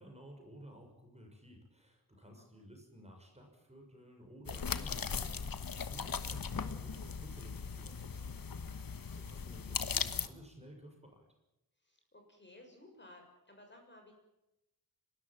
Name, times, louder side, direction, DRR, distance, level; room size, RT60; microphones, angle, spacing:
voice 1, 0.0-11.3, equal, 15° right, 2 dB, 6.4 m, -54 dB
voice 2, 2.1-2.5 11.8-14.1, left 1 dB, 30° left, 2 dB, 7.0 m, -58 dB
sound 1, 4.5-10.3, left 6 dB, 65° left, 1.3 m, -38 dB
30.0 x 13.5 x 9.1 m, 0.89 s
wide cardioid pair, 80°, 36 cm